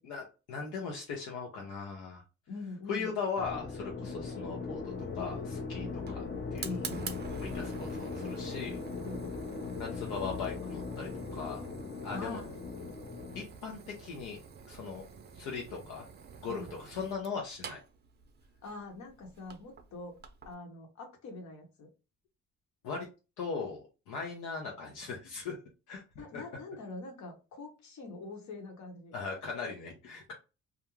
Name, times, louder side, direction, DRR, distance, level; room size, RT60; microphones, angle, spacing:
voice 1, 0.0-2.2 2.9-6.2 6.5-6.9 7.4-8.8 9.8-11.7 12.0-12.4 13.3-14.4 14.7-15.1 15.3-16.1 16.4-17.8 22.8-23.1 23.4-25.6 25.9-26.4 29.1-30.3, left 5 dB, 85° left, -1 dB, 0.7 m, -39 dB
voice 2, 2.5-3.1 4.0-4.1 5.8-6.0 6.6-7.1 9.0-9.3 12.1-12.6 16.5-16.7 18.6-20.2 20.4-21.9 26.2-29.1, left 3 dB, 65° left, 3 dB, 1.0 m, -44 dB
sound 1, 3.4-13.4, left 4 dB, 40° left, 0.6 m, -39 dB
Fire, 4.9-20.5, right 6 dB, 35° right, 0.5 m, -48 dB
2.4 x 2.2 x 3.0 m, 0.30 s
cardioid pair, 90°, 30 cm